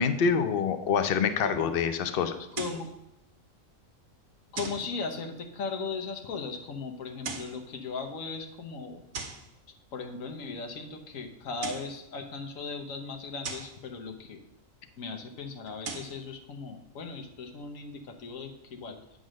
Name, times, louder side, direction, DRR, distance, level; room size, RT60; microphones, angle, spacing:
voice 1, 0.0-2.4, left 6 dB, 55° left, 9 dB, 0.7 m, -26 dB
voice 2, 2.5-2.9 4.5-9.0 9.9-14.4 15.0-19.0, left 4 dB, 75° left, 4 dB, 1.4 m, -37 dB
sound 1, 2.5-2.9 4.6-4.9 7.1-7.6 9.1-9.5 11.4-12.0 13.4-13.8 15.7-16.2, right 4 dB, 85° right, 1.4 m, -38 dB
9.0 x 3.9 x 6.3 m, 0.89 s
omnidirectional pair, 1.4 m